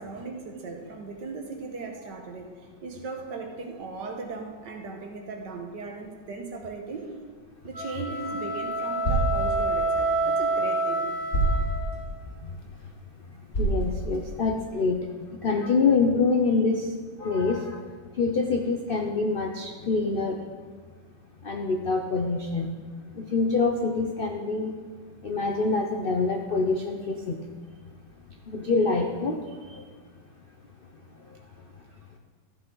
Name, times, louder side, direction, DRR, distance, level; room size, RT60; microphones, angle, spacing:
voice 1, 0.0-7.1 7.6-11.1 11.4-11.6, right 4 dB, 70° right, 3 dB, 1.8 m, -38 dB
sound 1, 7.7-12.2, right 2 dB, 5° right, 1.9 m, -28 dB
sound 2, 7.8-14.7, right 1 dB, 45° left, 2.6 m, -31 dB
voice 2, 13.6-15.0 15.4-16.9 17.2-17.8 18.2-20.4 21.4-22.7 23.1-24.7 25.2-27.4 28.5-29.4 29.7-29.8, left 4 dB, 80° left, 3 dB, 0.5 m, -25 dB
13.5 x 8.0 x 3.9 m, 1.5 s
omnidirectional pair, 2.0 m